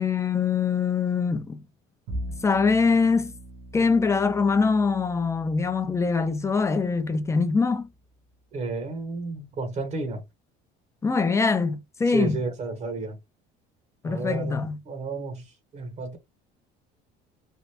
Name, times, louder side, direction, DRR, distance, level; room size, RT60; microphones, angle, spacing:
voice 1, 0.0-1.6 2.4-3.3 3.7-7.9 11.0-12.4 14.0-14.8, left 5 dB, 15° left, 0.5 m, -23 dB
Bowed string instrument, 2.1-8.5, right 1 dB, 80° right, 1.0 m, -42 dB
voice 2, 8.5-10.2 12.1-13.2 14.0-16.2, right 3 dB, 35° right, 0.9 m, -32 dB
3.3 x 2.4 x 2.8 m
cardioid pair, 130°, 19 cm